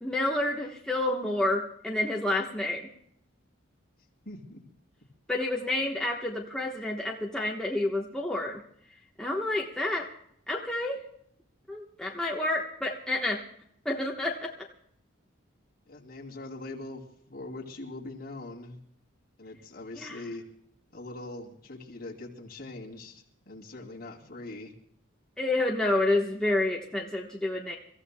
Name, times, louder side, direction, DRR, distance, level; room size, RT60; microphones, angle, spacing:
voice 1, 0.0-2.9 5.3-8.6 9.2-10.1 10.5-11.0 11.7-13.4 13.8-14.5 20.0-20.2 25.4-27.8, left 2 dB, 5° left, -2 dB, 1.1 m, -29 dB
voice 2, 4.2-4.6 15.9-17.0 17.3-18.8 19.4-20.4 20.9-24.7, left 2 dB, 45° left, -1 dB, 2.6 m, -42 dB
29.5 x 15.0 x 2.2 m, 0.68 s
head